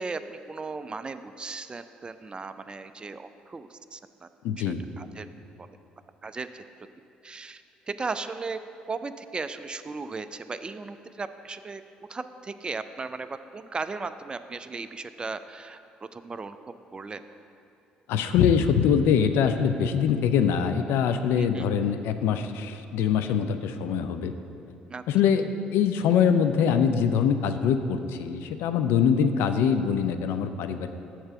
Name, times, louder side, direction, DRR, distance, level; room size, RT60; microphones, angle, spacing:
voice 1, 0.0-4.3 4.6-5.3 5.6-5.7 6.2-6.6 7.2-8.6 8.9-11.8 12.1-17.2 21.4-21.7 24.9-25.3, right 4 dB, 20° right, 11 dB, 0.3 m, -37 dB
voice 2, 4.4-4.8 18.1-24.3 25.1-25.4 25.7-30.9, left 7 dB, 60° left, 9 dB, 0.4 m, -23 dB
6.6 x 4.4 x 6.7 m, 2.7 s
figure-of-eight pair, 50°, 4 cm